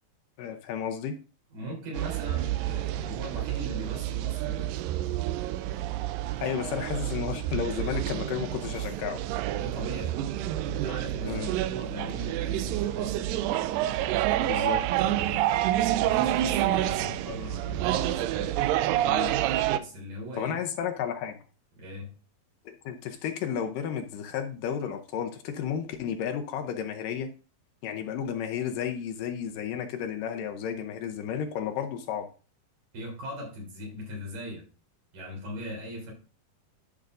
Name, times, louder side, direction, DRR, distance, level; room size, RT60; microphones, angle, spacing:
voice 1, 0.4-1.2 6.4-9.2 11.2-11.6 14.4-14.8 19.0-19.4 20.4-21.4 22.7-27.3 27.8-32.3, left 8 dB, 75° left, 2.3 m, -32 dB
voice 2, 1.5-4.7 6.3-6.6 9.4-10.2 10.6-13.2 14.5-18.5 19.7-20.6 21.8-22.1 32.9-34.7 35.1-36.1, equal, 65° right, 5.0 m, -40 dB
sound 1, 2.0-19.8, right 13 dB, 80° right, 2.2 m, -28 dB
12.5 x 5.9 x 2.5 m
omnidirectional pair, 4.1 m